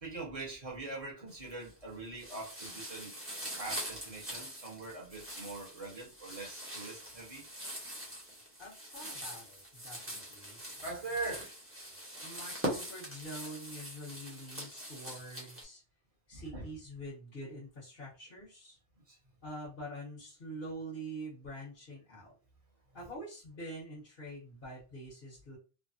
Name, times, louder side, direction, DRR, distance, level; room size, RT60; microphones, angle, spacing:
voice 1, 0.0-3.1 3.6-7.5 10.8-11.5 16.3-16.6 19.1-19.2, right 3 dB, 35° right, -3 dB, 1.2 m, -42 dB
sound 1, 1.3-1.8 2.2-15.6, right 1 dB, 15° right, 0.9 m, -43 dB
voice 2, 8.6-10.6 12.2-15.8 16.3-18.8 19.4-22.4 22.9-25.6, right 1 dB, 60° left, -7 dB, 1.3 m, -45 dB
3.3 x 2.1 x 2.6 m, 0.33 s
omnidirectional pair, 1.1 m